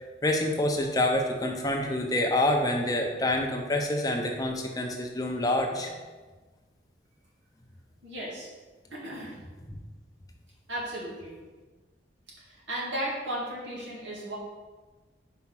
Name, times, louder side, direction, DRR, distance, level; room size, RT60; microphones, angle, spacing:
voice 1, 0.2-5.9, left 1 dB, 20° left, 2 dB, 0.7 m, -27 dB
voice 2, 8.0-8.5 8.9-9.4 10.7-11.4 12.4-14.3, right 1 dB, 90° right, -5 dB, 2.2 m, -35 dB
4.9 x 4.6 x 5.7 m, 1.3 s
head